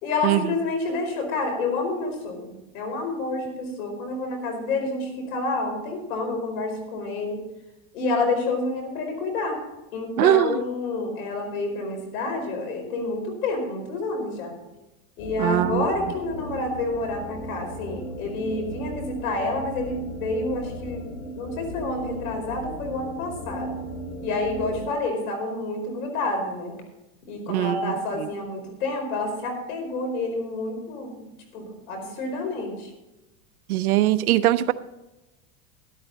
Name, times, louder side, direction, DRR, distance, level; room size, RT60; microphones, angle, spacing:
voice 1, 0.0-7.4 7.9-9.6 9.9-14.5 15.2-21.1 21.4-23.8 24.2-26.8 27.3-31.2 31.5-32.9, left 3 dB, 85° left, 4 dB, 4.7 m, -29 dB
voice 2, 10.2-10.6 15.4-15.9 27.5-27.9 33.7-34.7, right 13 dB, 90° right, 14 dB, 0.8 m, -21 dB
sound 1, 15.2-24.9, right 1 dB, 65° left, 3.6 m, -36 dB
13.0 x 12.0 x 4.0 m, 1.0 s
supercardioid pair, 115°, 42 cm